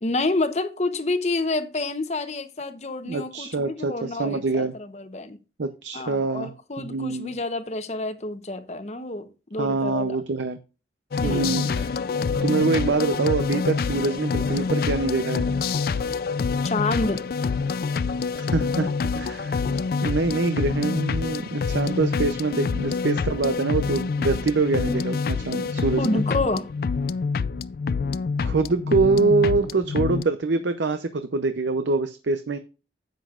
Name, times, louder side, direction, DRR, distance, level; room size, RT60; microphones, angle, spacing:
voice 1, 0.0-5.4 5.9-10.2 11.2-11.6 16.6-17.2 26.0-26.7, left 2 dB, 40° left, 0.8 m, -28 dB
voice 2, 3.1-4.7 5.6-7.3 9.6-10.6 11.2-11.9 12.4-15.5 18.4-19.6 20.0-26.2 28.4-32.6, right 3 dB, 80° right, 0.6 m, -25 dB
sound 1, 11.1-30.2, left 5 dB, 55° left, 0.3 m, -26 dB
10.0 x 8.1 x 2.4 m
head